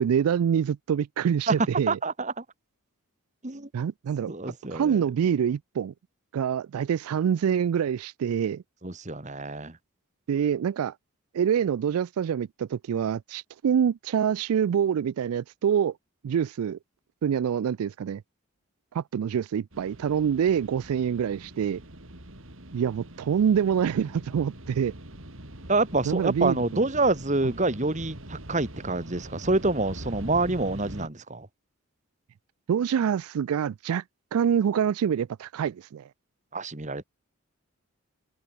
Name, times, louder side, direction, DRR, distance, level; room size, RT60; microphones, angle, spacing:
voice 1, 0.0-2.0 3.7-4.3 4.7-5.9 6.3-8.6 10.3-10.9 11.3-16.0 16.2-16.8 17.2-18.2 18.9-21.8 22.7-24.9 26.1-26.8 32.7-34.0 34.3-36.1, right 8 dB, 75° right, 0.3 m, -26 dB
voice 2, 1.9-2.4 3.4-3.7 4.3-5.0 8.8-9.8 25.7-31.5 36.5-37.0, right 2 dB, 30° right, 1.6 m, -27 dB
sound 1, 19.7-31.1, right 1 dB, 60° right, 4.1 m, -43 dB
head